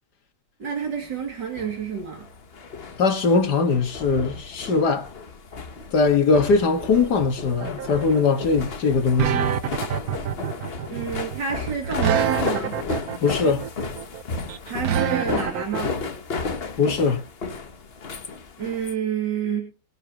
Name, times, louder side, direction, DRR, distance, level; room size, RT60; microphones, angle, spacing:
voice 1, 0.6-2.3 10.9-12.8 14.7-16.0 18.6-19.7, right 7 dB, 85° right, 3.2 m, -29 dB
sound 1, 1.0-18.9, left 4 dB, 40° left, 1.2 m, -33 dB
voice 2, 3.0-5.1 5.9-9.4 13.2-13.7 16.8-17.2, left 4 dB, 70° left, 2.2 m, -21 dB
sound 2, 7.6-15.8, right 9 dB, 65° right, 1.2 m, -26 dB
23.0 x 8.1 x 3.0 m
omnidirectional pair, 1.9 m